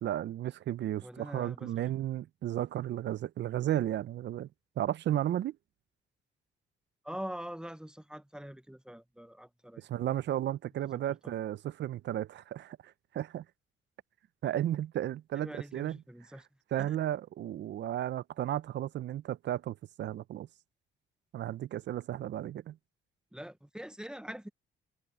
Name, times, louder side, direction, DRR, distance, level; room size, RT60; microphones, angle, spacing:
voice 1, 0.0-4.5 4.8-5.6 9.9-13.4 14.4-16.0 16.7-20.5 21.3-22.8, right 12 dB, 65° right, 0.6 m, -34 dB
voice 2, 1.0-1.9 7.0-9.8 10.8-11.4 15.3-16.5 16.8-17.0 23.3-24.5, equal, 5° right, 0.8 m, -44 dB
cardioid pair, 90°, 20 cm